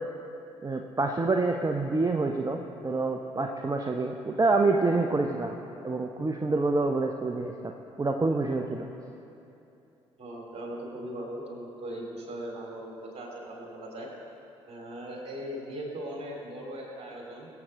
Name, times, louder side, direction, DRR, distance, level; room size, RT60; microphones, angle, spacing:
voice 1, 0.6-7.7 8.0-8.9, right 3 dB, 25° right, 3 dB, 0.8 m, -27 dB
voice 2, 10.2-14.1 14.7-17.5, right 1 dB, 40° right, -1 dB, 3.4 m, -39 dB
22.5 x 7.9 x 3.8 m, 2.8 s
figure-of-eight pair, 45°, 15 cm